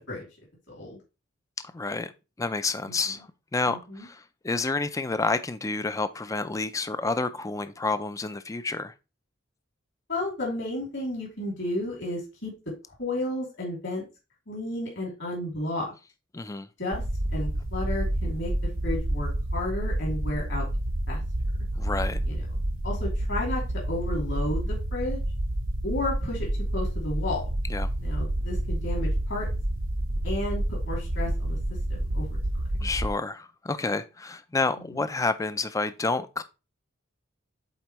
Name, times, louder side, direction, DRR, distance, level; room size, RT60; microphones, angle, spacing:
voice 1, 0.7-1.0 2.9-3.0 3.7-4.1 10.1-12.5 12.9-14.0 14.5-15.9 16.8-17.0 17.3-18.5 18.8-20.6 21.1-21.2 22.3-22.4 22.8-25.2 25.8-27.4 28.0-29.5 30.2-31.6 31.9-32.4 32.8-32.9 34.9-35.0, left 1 dB, 60° left, 2.7 m, -32 dB
voice 2, 1.7-2.1 2.4-8.9 16.3-16.7 21.8-22.2 27.7-27.9 32.8-36.4, left 3 dB, 15° left, 0.4 m, -29 dB
sound 1, 16.9-33.1, right 1 dB, 75° right, 0.9 m, -29 dB
8.0 x 4.2 x 3.0 m
head